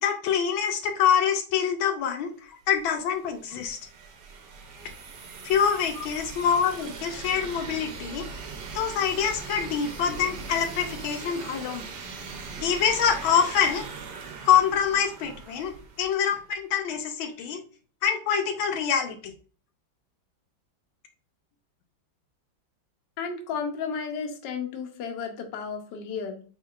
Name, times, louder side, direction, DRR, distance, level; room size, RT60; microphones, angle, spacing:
voice 1, 0.0-3.8 5.4-8.3 8.7-11.9 12.6-13.9 14.4-17.6 18.0-19.3, left 8 dB, 85° left, 4 dB, 1.5 m, -25 dB
sound 1, 2.7-16.4, right 4 dB, 65° right, 1.3 m, -40 dB
voice 2, 23.2-26.4, left 6 dB, 65° left, 4 dB, 1.3 m, -33 dB
4.5 x 3.8 x 2.4 m, 0.39 s
omnidirectional pair, 2.2 m